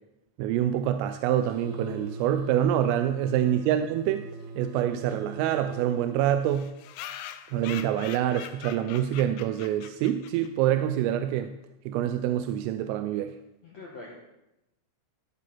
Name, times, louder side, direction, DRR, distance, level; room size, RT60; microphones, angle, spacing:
voice 1, 0.4-4.3 4.6-6.7 7.5-11.5 11.9-13.4, right 11 dB, 85° right, 8 dB, 3.2 m, -26 dB
sound 1, 1.4-6.4, right 2 dB, 25° right, 2.5 m, -41 dB
sound 2, 4.8-4.9 5.1-5.2 5.4-5.5 5.7-5.8 6.5-10.7, left 11 dB, 80° left, 2.8 m, -43 dB
voice 2, 13.6-14.2, left 3 dB, 55° left, -3 dB, 1.9 m, -44 dB
16.0 x 8.2 x 6.1 m, 0.93 s
omnidirectional pair, 5.9 m